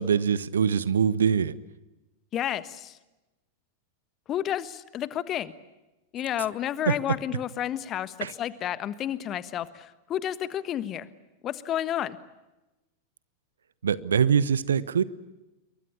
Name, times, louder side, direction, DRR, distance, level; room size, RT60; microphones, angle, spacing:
voice 1, 0.0-1.6 6.9-7.0 8.2-8.3 13.8-15.0, right 7 dB, 70° right, 19 dB, 1.0 m, -23 dB
voice 2, 2.3-3.0 4.3-5.5 6.1-11.1 11.4-12.2, left 11 dB, 30° left, 15 dB, 1.4 m, -31 dB
28.0 x 23.5 x 8.6 m, 1.0 s
figure-of-eight pair, 90°, 0 cm